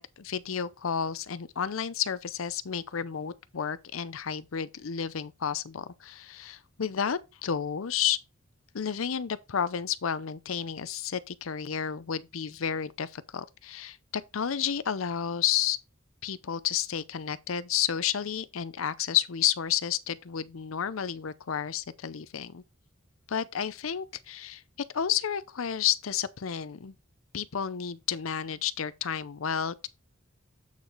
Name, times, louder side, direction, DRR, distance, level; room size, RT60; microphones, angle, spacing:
voice 1, 0.0-8.2 8.7-15.8 16.2-22.6 23.3-24.6 24.9-26.9 27.3-29.9, left 8 dB, 75° left, 0.6 m, -31 dB
8.2 x 4.8 x 4.0 m
head